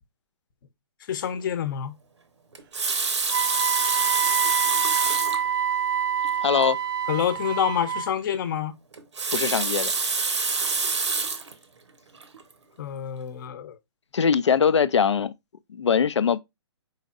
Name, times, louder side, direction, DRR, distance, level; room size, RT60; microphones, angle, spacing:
voice 1, 1.1-1.9 7.1-8.7 12.8-13.8, left 9 dB, 45° left, 0.8 m, -27 dB
Water tap faucet, 2.5-5.5 6.2-6.4 6.6-6.7 8.9-11.5 12.2-12.4, right 4 dB, 80° right, 0.9 m, -26 dB
Wind instrument woodwind instrument, 3.3-8.1, right 8 dB, 50° right, 0.6 m, -26 dB
voice 2, 6.4-6.8 9.3-9.9 14.1-15.3 15.7-16.4, left 7 dB, 80° left, 0.5 m, -21 dB
4.9 x 4.1 x 2.3 m
figure-of-eight pair, 130°, 15 cm